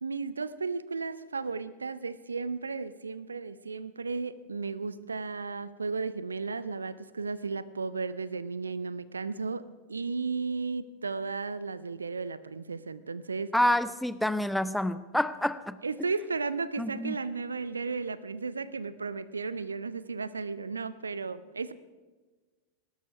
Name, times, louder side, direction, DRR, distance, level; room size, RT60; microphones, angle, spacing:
voice 1, 0.0-13.5 15.8-21.7, right 4 dB, 75° right, 17 dB, 0.6 m, -34 dB
voice 2, 13.5-15.8 16.8-17.1, left 1 dB, ahead, 14 dB, 0.6 m, -28 dB
19.0 x 12.0 x 5.7 m, 1.3 s
figure-of-eight pair, 90°, 0 cm